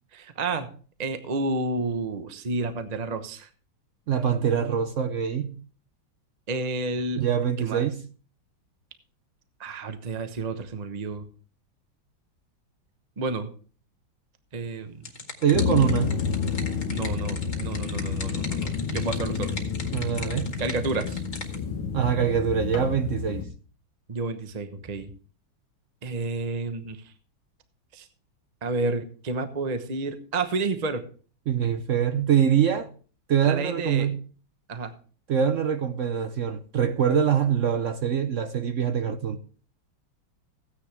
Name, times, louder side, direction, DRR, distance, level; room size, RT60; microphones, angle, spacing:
voice 1, 0.1-0.7 1.0-3.5 6.5-7.2 7.6-7.9 9.6-11.3 13.2-13.5 14.5-15.0 15.8-15.9 16.9-19.5 20.6-21.2 24.1-25.1 26.0-27.0 27.9-28.1 28.6-31.0 33.4-34.1 34.7-34.9, right 3 dB, 35° right, 0.7 m, -30 dB
voice 2, 4.1-5.6 7.2-8.0 15.4-16.2 19.9-20.5 21.9-23.5 31.5-32.9 33.3-34.1 35.3-39.4, right 8 dB, 75° right, 0.7 m, -24 dB
sound 1, 14.7-21.6, left 3 dB, 35° left, 2.1 m, -40 dB
sound 2, 15.5-23.4, left 6 dB, 80° left, 2.0 m, -29 dB
16.0 x 9.6 x 3.3 m
omnidirectional pair, 2.1 m